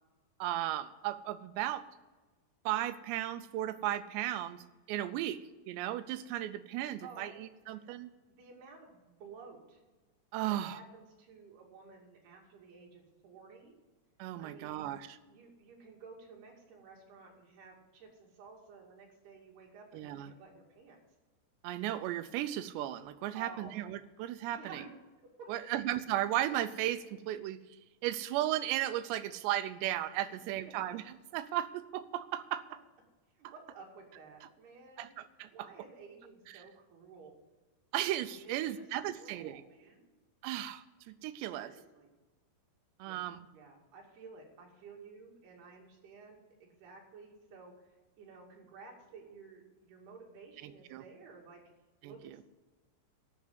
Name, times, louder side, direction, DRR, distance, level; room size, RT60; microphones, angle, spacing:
voice 1, 0.4-1.8 2.7-5.4 5.7-8.1 10.3-10.8 14.2-15.2 19.9-20.3 21.6-24.8 25.5-27.6 28.0-31.0 31.3-32.7 33.4-33.5 35.0-35.5 36.5-36.6 37.9-39.6 40.4-41.7 43.0-43.5 50.6-51.0 52.0-52.4, right 13 dB, 80° right, 12 dB, 2.8 m, -35 dB
voice 2, 7.0-7.8 8.3-9.8 10.5-13.8 14.4-14.9 15.3-21.0 23.3-23.8 24.5-24.9 25.4-25.5 30.7-30.9 33.3-35.1 35.5-37.3 38.5-40.1 41.6-42.1 43.1-51.6 52.0-52.4, right 4 dB, 65° right, -1 dB, 4.3 m, -53 dB
12.5 x 6.8 x 7.9 m, 1.2 s
omnidirectional pair, 5.1 m